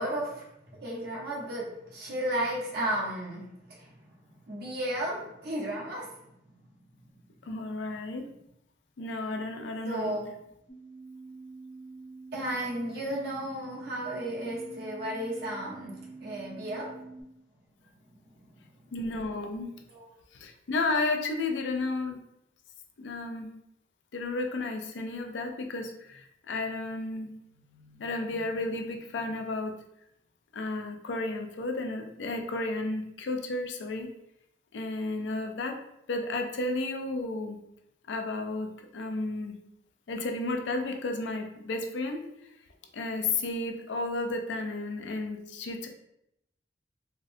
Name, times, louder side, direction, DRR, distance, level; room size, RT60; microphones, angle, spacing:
voice 1, 0.0-3.5 3.8-3.9 4.5-6.1 9.8-10.3 12.3-17.0 18.4-18.5 19.9-20.1, right 1 dB, 60° right, -3 dB, 0.9 m, -34 dB
voice 2, 7.4-8.2 9.0-10.1 18.9-19.7 20.3-22.2 23.0-23.5 24.1-27.3 27.7-29.7 30.5-34.1 34.7-35.8 36.1-37.6 38.1-39.5 40.1-42.2 42.9-45.9, left 2 dB, 80° left, 4 dB, 0.4 m, -32 dB
sound 1, 10.7-17.2, right 3 dB, 25° left, 0.6 m, -46 dB
3.7 x 2.1 x 2.6 m, 0.81 s
head